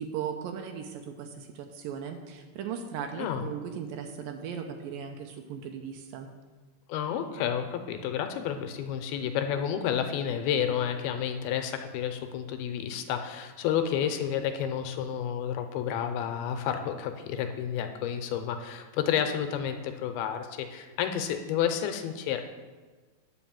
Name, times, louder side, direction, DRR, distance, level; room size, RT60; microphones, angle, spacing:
voice 1, 0.0-6.3, right 7 dB, 75° right, 5 dB, 2.2 m, -37 dB
voice 2, 6.9-22.4, left 9 dB, 85° left, 7 dB, 2.6 m, -30 dB
9.2 x 5.3 x 7.3 m, 1.3 s
omnidirectional pair, 4.4 m